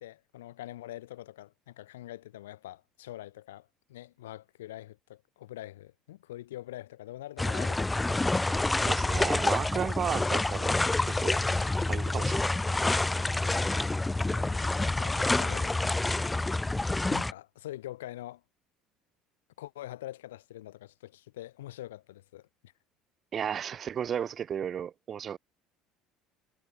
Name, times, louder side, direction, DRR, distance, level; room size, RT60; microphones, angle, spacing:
voice 1, 0.0-8.1 14.1-15.8 17.1-18.4 19.6-22.7, left 14 dB, 75° left, 4.3 m, -44 dB
sound 1, 7.4-17.3, left 2 dB, 15° left, 0.6 m, -28 dB
voice 2, 8.8-10.8 11.2-11.4 11.9-12.8 23.3-25.4, right 8 dB, 40° right, 1.0 m, -34 dB
figure-of-eight pair, 60°, 0 cm